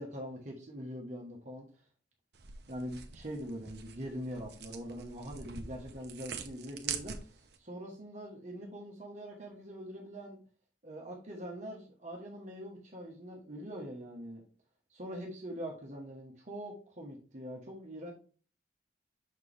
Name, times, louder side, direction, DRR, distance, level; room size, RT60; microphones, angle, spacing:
voice 1, 0.0-1.7 2.7-10.4 10.8-14.4 14.9-18.1, equal, 40° right, -1 dB, 1.1 m, -43 dB
sound 1, 2.3-7.6, right 7 dB, 60° right, 0.8 m, -44 dB
6.5 x 4.5 x 3.3 m, 0.40 s
head